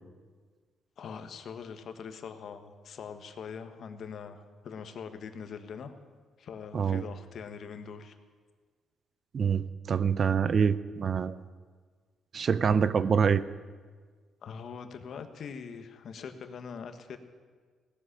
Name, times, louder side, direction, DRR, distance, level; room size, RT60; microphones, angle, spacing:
voice 1, 1.0-5.9 6.4-8.1 14.4-17.2, left 6 dB, 60° left, 8 dB, 1.3 m, -42 dB
voice 2, 9.3-11.4 12.3-13.4, right 6 dB, 50° right, 15 dB, 0.6 m, -25 dB
17.0 x 7.8 x 10.0 m, 1.5 s
cardioid pair, 90°, 0 cm